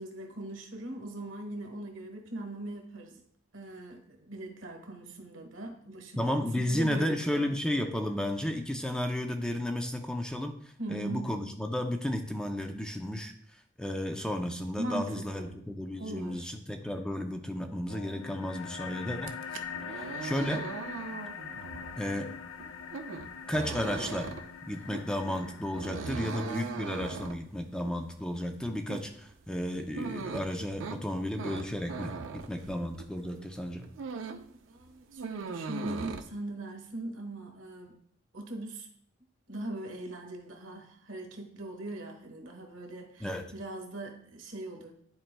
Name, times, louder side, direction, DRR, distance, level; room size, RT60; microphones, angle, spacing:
voice 1, 0.0-3.2 3.5-7.5 10.8-11.3 14.8-15.6 16.0-16.5 24.7-24.9 26.2-26.4 34.2-37.9 38.3-38.9 39.5-44.9, right 1 dB, 90° right, 3 dB, 1.2 m, -40 dB
voice 2, 6.2-19.4 19.9-20.7 22.0-22.3 23.5-24.3 24.6-33.9 43.2-43.5, left 1 dB, 5° left, 5 dB, 0.4 m, -33 dB
sound 1, 17.9-26.9, left 6 dB, 80° left, 0.4 m, -43 dB
sound 2, 19.1-33.2 33.6-34.5 34.8-36.2, right 4 dB, 70° right, 0.5 m, -40 dB
10.5 x 4.4 x 2.2 m, 0.65 s
head